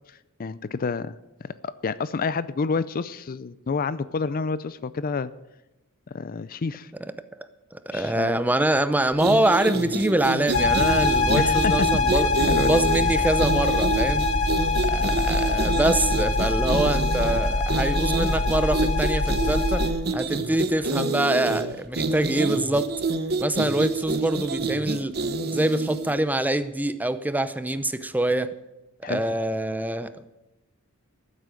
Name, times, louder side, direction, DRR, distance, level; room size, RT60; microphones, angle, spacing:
voice 1, 0.1-5.3 6.1-6.9 7.9-8.4 11.4-12.7 29.0-29.3, left 4 dB, 40° left, 16 dB, 0.4 m, -29 dB
voice 2, 7.7-12.3 12.6-14.3 14.8-19.9 20.1-22.9 23.4-25.1 25.5-28.5 29.0-30.2, right 1 dB, 10° right, 12 dB, 0.6 m, -25 dB
sound 1, 9.1-26.2, right 3 dB, 45° right, 0.9 m, -28 dB
sound 2, 10.5-19.9, left 3 dB, 65° left, 1.4 m, -23 dB
14.5 x 8.3 x 7.7 m, 0.98 s
head